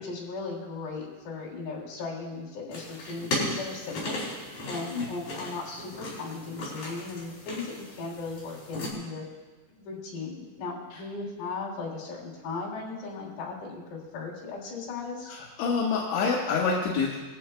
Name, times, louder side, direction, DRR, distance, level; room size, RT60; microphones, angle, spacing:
voice 1, 0.0-4.2 4.7-9.2 9.8-15.4, left 4 dB, 65° left, -3 dB, 5.1 m, -37 dB
sound 1, 2.7-8.9, left 1 dB, 50° left, 6.5 m, -36 dB
voice 2, 15.3-17.2, left 5 dB, 80° left, -4 dB, 3.6 m, -27 dB
21.0 x 15.0 x 2.2 m, 1.2 s
omnidirectional pair, 5.2 m